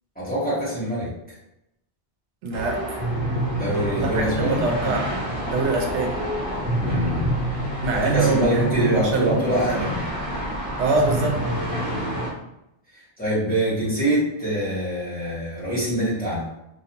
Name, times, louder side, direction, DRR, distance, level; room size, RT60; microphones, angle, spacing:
voice 1, 0.2-1.1 3.5-4.6 6.8-7.3 7.9-10.1 11.5-12.2 13.2-16.5, right 1 dB, 10° left, -10 dB, 1.0 m, -24 dB
voice 2, 2.4-3.0 4.0-5.1 5.5-6.2 7.8-9.4 10.8-11.4, right 3 dB, 85° right, 1 dB, 0.9 m, -24 dB
sound 1, 2.5-12.3, equal, 35° right, 0.9 m, -28 dB
sound 2, 5.5-11.7, equal, 45° left, 0.5 m, -38 dB
2.4 x 2.3 x 2.8 m, 0.85 s
omnidirectional pair, 1.1 m